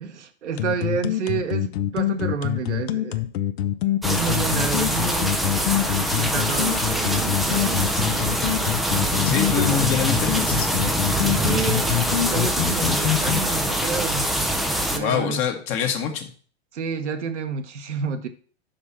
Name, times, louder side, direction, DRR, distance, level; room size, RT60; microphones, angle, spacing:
voice 1, 0.0-3.2 4.1-5.3 6.0-8.3 9.6-9.7 11.3-14.3 14.9-15.4 16.7-18.3, right 6 dB, 80° right, 7 dB, 1.1 m, -29 dB
sound 1, 0.6-13.4, left 13 dB, 60° left, 0.8 m, -25 dB
sound 2, 4.0-15.0, right 1 dB, ahead, 0.4 m, -24 dB
voice 2, 9.2-10.7 14.9-16.3, left 7 dB, 35° left, 4 dB, 1.5 m, -25 dB
5.7 x 5.2 x 5.8 m, 0.43 s
hypercardioid pair, 110°, 35 cm